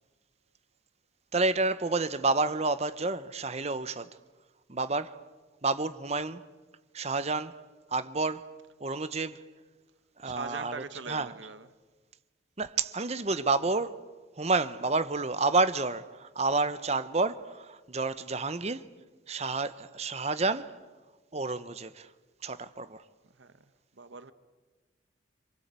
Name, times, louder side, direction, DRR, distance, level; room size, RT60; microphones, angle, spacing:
voice 1, 1.3-4.2 4.7-5.2 5.6-6.4 6.9-7.6 7.9-9.4 10.2-10.8 11.1-11.3 12.6-18.9 19.3-20.8 21.3-22.1 22.4-23.0, right 3 dB, 35° right, 1.0 m, -30 dB
voice 2, 10.2-11.7 23.3-23.6 23.9-24.3, right 4 dB, 85° right, 1.2 m, -42 dB
27.0 x 26.5 x 8.3 m
head